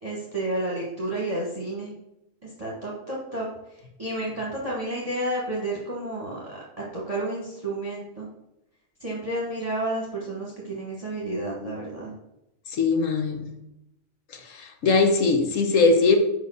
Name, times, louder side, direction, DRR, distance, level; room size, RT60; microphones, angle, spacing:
voice 1, 0.0-1.9 2.4-6.6 6.9-8.3 9.0-12.1, right 1 dB, 25° right, -4 dB, 1.3 m, -31 dB
voice 2, 12.7-13.5 14.3-16.2, left 4 dB, 65° left, 6 dB, 1.2 m, -21 dB
5.1 x 4.7 x 6.3 m, 0.87 s
omnidirectional pair, 1.5 m